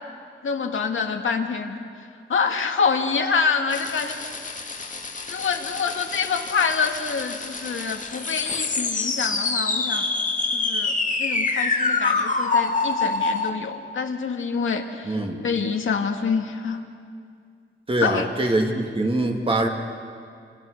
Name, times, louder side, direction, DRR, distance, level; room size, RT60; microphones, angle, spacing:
voice 1, 0.4-1.9 2.3-4.2 5.3-10.1 10.5-16.9 18.0-18.3, left 5 dB, 75° left, 4 dB, 2.0 m, -26 dB
sound 1, 3.7-13.5, left 3 dB, 40° left, 2.0 m, -26 dB
voice 2, 15.0-15.4 17.9-19.7, right 2 dB, 25° right, 2 dB, 2.5 m, -23 dB
28.5 x 27.5 x 6.6 m, 2.2 s
wide cardioid pair, 150°, 20 cm